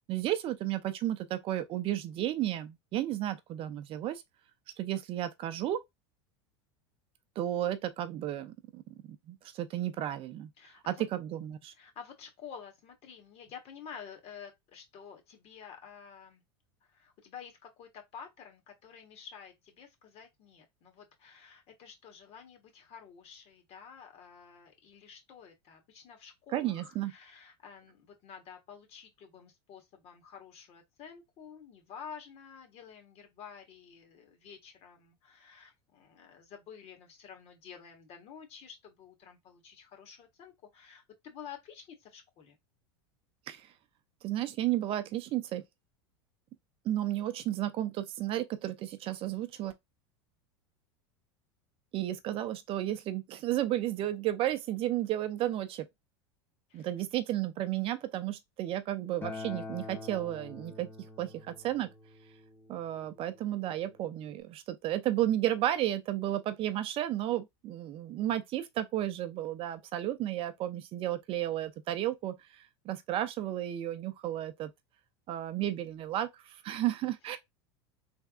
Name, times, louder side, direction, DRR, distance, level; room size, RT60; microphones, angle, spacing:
voice 1, 0.1-4.2 4.8-5.8 7.4-8.8 9.3-10.5 10.9-11.7 26.5-27.1 43.5-43.7 44.2-45.6 46.9-49.7 51.9-55.9 56.7-60.9 61.2-61.9 62.7-74.7 75.3-77.4, right 13 dB, 40° right, 0.5 m, -33 dB
voice 2, 10.6-11.0 11.7-16.4 16.8-42.6 56.7-56.9 77.2-77.4, left 7 dB, 45° left, 1.2 m, -50 dB
Acoustic guitar, 59.2-64.4, left 3 dB, 15° left, 0.7 m, -46 dB
3.3 x 2.5 x 2.4 m
supercardioid pair, 110°, 14 cm